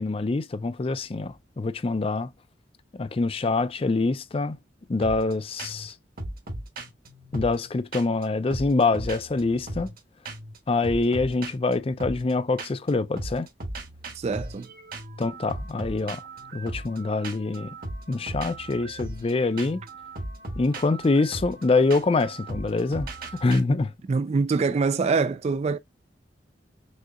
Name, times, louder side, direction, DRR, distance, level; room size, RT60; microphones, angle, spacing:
voice 1, 0.0-2.3 2.9-4.6 4.9-5.9 7.3-9.9 10.7-13.5 15.2-16.2 16.5-17.8 18.1-19.8 20.6-23.1 23.4-23.9, left 3 dB, 30° left, 0.4 m, -25 dB
sound 1, 5.0-5.3 5.6-5.9 6.2-8.2 8.5-10.0 10.2-10.6 10.8-12.9 13.2-23.6, right 2 dB, 50° right, 1.3 m, -37 dB
voice 2, 14.2-14.7 24.1-25.8, right 4 dB, 35° right, 0.3 m, -24 dB
6.2 x 2.8 x 2.4 m
head